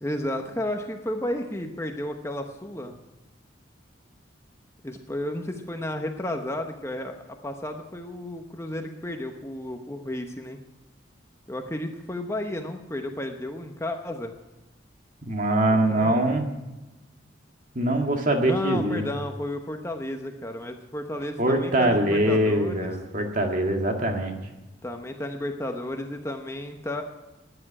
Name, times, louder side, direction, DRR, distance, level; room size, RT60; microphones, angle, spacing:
voice 1, 0.0-2.9 4.8-7.2 7.4-10.6 11.5-14.3 15.7-16.2 18.4-22.9 24.8-27.0, left 1 dB, 15° left, 4 dB, 1.0 m, -32 dB
voice 2, 15.2-16.5 17.8-19.0 21.4-24.4, right 1 dB, 40° right, 3 dB, 1.9 m, -23 dB
13.0 x 10.0 x 9.9 m, 1.0 s
head